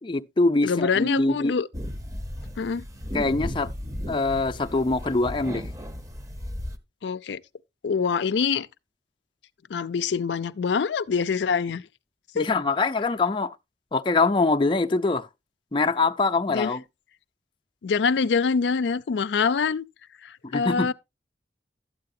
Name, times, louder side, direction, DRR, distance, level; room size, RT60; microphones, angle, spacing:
voice 1, 0.0-1.5 3.1-3.7 4.1-5.7 12.3-13.5 13.9-15.3 15.7-16.8 20.4-20.9, left 3 dB, 30° left, 0.5 m, -23 dB
voice 2, 0.6-1.7 2.6-2.8 7.0-7.4 7.8-8.7 9.7-11.8 12.4-12.5 16.5-16.7 17.8-19.8 20.2-20.9, left 5 dB, 80° left, 0.4 m, -25 dB
sound 1, 1.7-6.8, equal, 20° right, 0.9 m, -35 dB
12.5 x 8.6 x 2.6 m
head